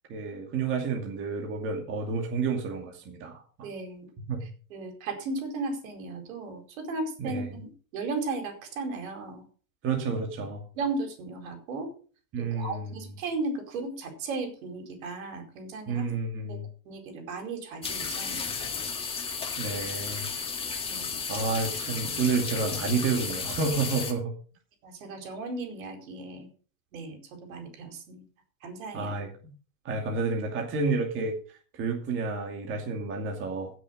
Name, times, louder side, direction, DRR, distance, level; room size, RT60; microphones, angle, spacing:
voice 1, 0.1-3.7 4.3-4.4 7.2-7.5 9.8-10.6 12.3-13.1 15.9-16.7 19.6-20.3 21.3-24.3 28.9-29.3 29.8-33.7, right 4 dB, 30° right, 2 dB, 2.4 m, -30 dB
voice 2, 3.6-4.1 4.7-9.5 10.7-11.9 12.4-16.0 16.5-16.6 16.8-18.4 18.8-18.9 20.8-21.1 24.8-26.5 26.9-28.2 28.6-29.2, right 3 dB, 70° right, 5 dB, 4.6 m, -35 dB
sound 1, 17.8-24.1, left 5 dB, 15° left, 1.9 m, -33 dB
15.5 x 6.5 x 5.3 m, 0.41 s
supercardioid pair, 155°, 42 cm